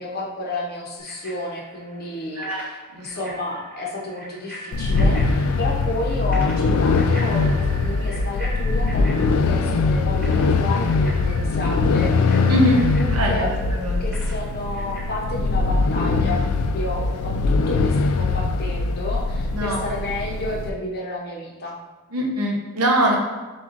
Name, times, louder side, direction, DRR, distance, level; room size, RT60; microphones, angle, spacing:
voice 1, 0.0-12.2 13.2-13.7 14.0-16.4 16.7-21.8, left 2 dB, 45° left, -2 dB, 0.7 m, -31 dB
Bicycle bell, 1.0-15.1, right 1 dB, 10° right, 1.3 m, -42 dB
voice 2, 2.9-3.3 12.5-14.0 19.5-19.8 22.1-23.2, right 1 dB, 85° right, 0 dB, 0.8 m, -23 dB
sound 1, 4.7-20.7, left 3 dB, 65° left, 0.3 m, -21 dB
7.0 x 2.3 x 2.5 m, 1.3 s
head